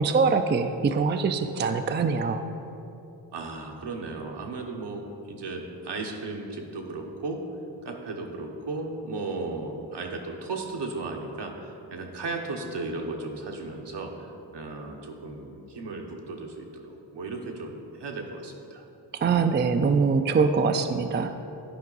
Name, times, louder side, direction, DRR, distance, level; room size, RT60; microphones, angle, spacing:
voice 1, 0.0-2.4 19.1-21.4, right 5 dB, 25° right, 7 dB, 0.4 m, -23 dB
voice 2, 3.3-7.4 7.8-18.8 20.8-21.1, right 3 dB, 65° right, 2 dB, 1.0 m, -35 dB
10.5 x 4.5 x 4.0 m, 3.0 s
cardioid pair, 40°, 43 cm